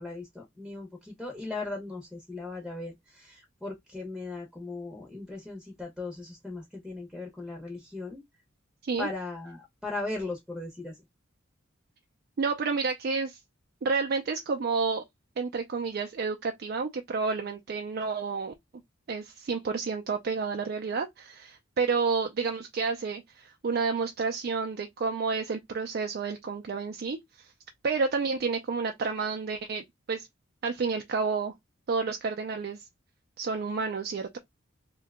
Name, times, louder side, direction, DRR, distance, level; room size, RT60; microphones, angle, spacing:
voice 1, 0.0-8.2 9.0-10.9, left 3 dB, ahead, 0.7 m, -38 dB
voice 2, 12.4-13.4 13.8-15.0 15.4-18.5 19.1-27.5 27.8-30.3 30.6-31.5 31.9-32.8 33.4-34.4, right 4 dB, 50° right, 0.4 m, -30 dB
2.7 x 2.2 x 3.4 m
head